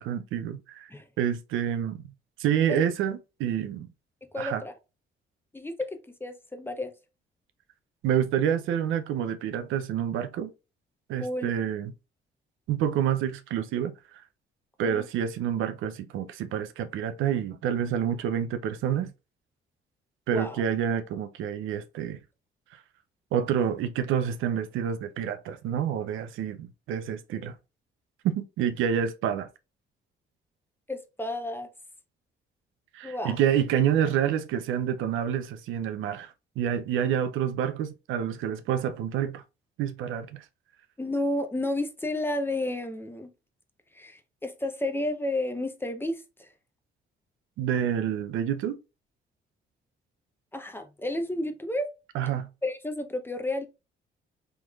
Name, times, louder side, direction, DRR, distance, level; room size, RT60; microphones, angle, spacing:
voice 1, 0.0-0.9 1.2-2.0 2.4-3.9 4.4-4.6 8.0-10.5 11.1-11.9 12.7-14.2 14.8-19.1 20.3-22.2 23.3-27.6 28.2-29.5 32.9-39.4 39.8-40.4 47.6-48.8 52.1-52.5, right 9 dB, 85° right, 0.5 m, -28 dB
voice 2, 4.3-4.7 5.5-6.9 11.2-11.5 14.8-15.0 20.3-20.6 30.9-31.7 33.0-33.4 41.0-43.3 43.9-46.5 50.5-51.9 52.6-53.7, left 1 dB, 10° left, 0.6 m, -31 dB
3.5 x 3.1 x 2.3 m
cardioid pair, 90°, 20 cm